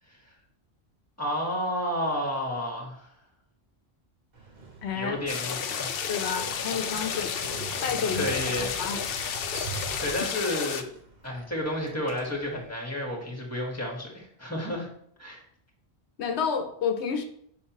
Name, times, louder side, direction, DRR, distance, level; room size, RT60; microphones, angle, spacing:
voice 1, 1.2-3.1 4.9-6.0 7.1-7.2 8.1-8.7 10.0-10.9 11.2-14.9 15.2-15.4, left 1 dB, 15° left, 0 dB, 1.4 m, -31 dB
Motorcycle, 4.3-12.7, right 4 dB, 45° right, 1.1 m, -43 dB
voice 2, 4.8-5.2 6.1-7.3 7.8-8.3 8.6-9.0 16.2-17.2, left 6 dB, 90° left, 6 dB, 1.0 m, -30 dB
sound 1, 5.3-10.8, left 7 dB, 65° left, 0.7 m, -32 dB
6.5 x 4.9 x 3.0 m, 0.67 s
omnidirectional pair, 1.1 m